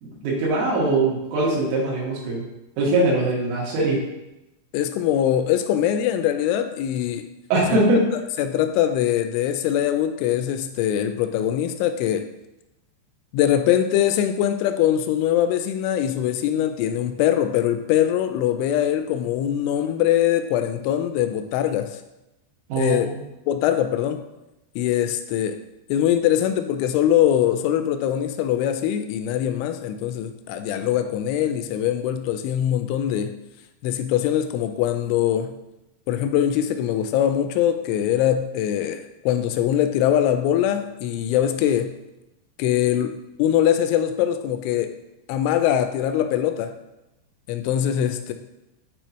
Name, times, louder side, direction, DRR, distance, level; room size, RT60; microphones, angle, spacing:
voice 1, 0.0-2.4 2.8-4.0 7.5-8.0 22.7-23.2, right 2 dB, 85° right, -6 dB, 4.5 m, -21 dB
voice 2, 4.7-7.2 7.7-7.8 8.4-12.2 13.3-21.9 22.8-23.1 23.5-24.2 24.8-25.6 25.9-33.4 33.8-35.6 36.1-42.0 42.6-44.9 45.3-46.7 47.5-48.3, left 10 dB, 85° left, 8 dB, 2.9 m, -22 dB
9.4 x 4.3 x 3.0 m, 0.93 s
omnidirectional pair, 5.6 m